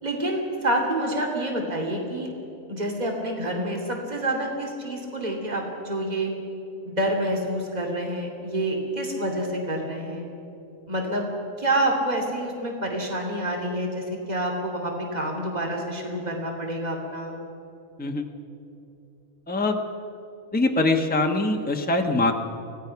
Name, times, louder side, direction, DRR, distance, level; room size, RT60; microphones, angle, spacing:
voice 1, 0.0-2.4 2.7-6.3 6.8-10.3 10.9-11.3 11.6-17.4, right 1 dB, 30° right, 1 dB, 3.0 m, -28 dB
voice 2, 19.5-19.8 20.5-22.3, left 2 dB, 5° left, 3 dB, 1.1 m, -23 dB
25.0 x 18.0 x 5.9 m, 2.9 s
omnidirectional pair, 1.5 m